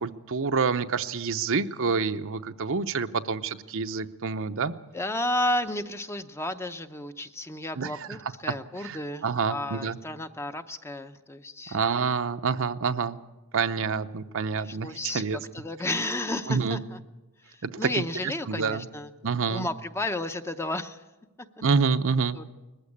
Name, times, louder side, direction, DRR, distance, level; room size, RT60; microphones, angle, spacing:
voice 1, 0.0-4.7 7.8-7.9 8.8-9.0 9.2-10.0 11.7-13.2 13.5-15.4 16.5-16.8 17.6-18.0 18.5-18.8 19.2-19.7 21.6-22.4, right 5 dB, 65° right, 9 dB, 0.7 m, -27 dB
voice 2, 4.9-11.8 14.3-17.0 17.4-19.1 19.5-21.0 22.3-22.4, left 1 dB, 10° left, 9 dB, 0.7 m, -32 dB
20.5 x 15.0 x 8.6 m, 1.1 s
head